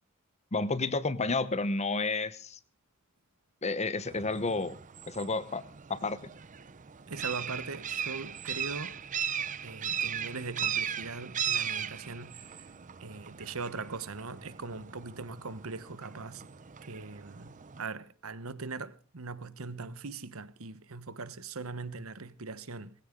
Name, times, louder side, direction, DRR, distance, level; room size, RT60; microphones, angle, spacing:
voice 1, 0.5-2.6 3.6-4.7 5.1-5.6 5.9-6.2, left 3 dB, 30° left, 1.0 m, -30 dB
sound 1, 4.1-17.8, right 8 dB, 35° right, 0.7 m, -38 dB
voice 2, 7.1-9.0 9.6-12.7 13.0-16.4 16.9-22.9, right 4 dB, 75° right, 1.1 m, -40 dB
20.5 x 16.0 x 3.9 m
head